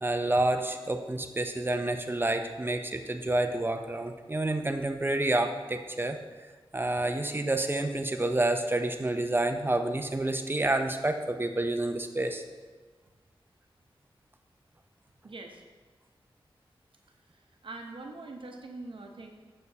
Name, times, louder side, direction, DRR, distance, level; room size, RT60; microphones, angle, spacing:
voice 1, 0.0-6.2 6.7-12.4, right 2 dB, 20° right, 6 dB, 0.6 m, -29 dB
voice 2, 15.2-15.6 17.1-19.3, right 2 dB, 65° right, 3 dB, 0.8 m, -44 dB
6.6 x 6.6 x 2.8 m, 1.4 s
cardioid pair, 55°, 9 cm